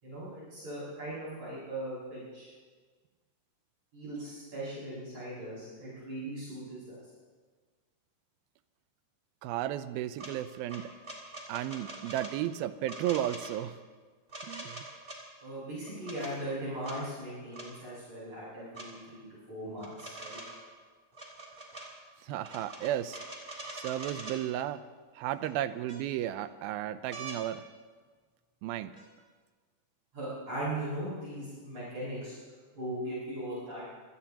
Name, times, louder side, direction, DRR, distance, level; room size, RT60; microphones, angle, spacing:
voice 1, 0.0-2.5 3.9-7.0 15.4-20.4 30.1-32.3 32.8-33.8, right 1 dB, 45° right, -10 dB, 7.7 m, -39 dB
voice 2, 9.4-10.9 11.5-13.8 14.4-14.9 22.2-23.2 23.7-24.8 25.2-27.6 28.6-28.9, right 12 dB, 85° right, 12 dB, 2.4 m, -34 dB
sound 1, 10.2-10.3 10.7-12.3 12.9-13.5 14.3-15.2 15.8-16.3 16.8-17.0 17.5-17.7 18.7-18.9 19.8-20.7 21.1-21.9 22.4-24.4 25.4-25.5 25.9-26.4 27.1-27.4 29.0-29.1, right 2 dB, 15° right, 2.7 m, -43 dB
26.0 x 18.5 x 2.9 m, 1.5 s
omnidirectional pair, 4.4 m